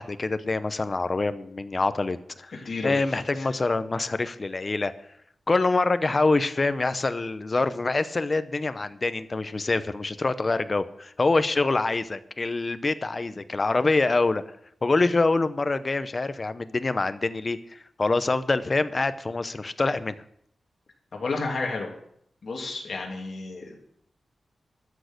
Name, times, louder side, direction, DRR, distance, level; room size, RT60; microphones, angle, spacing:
voice 1, 0.0-4.9 5.5-14.4 14.8-20.1, left 3 dB, 30° left, 12 dB, 0.7 m, -25 dB
voice 2, 2.5-2.9 3.3-3.5 21.1-21.9 22.4-23.8, left 3 dB, 55° left, 0 dB, 2.9 m, -31 dB
13.0 x 6.5 x 8.0 m, 0.71 s
wide cardioid pair, 140°, 0 cm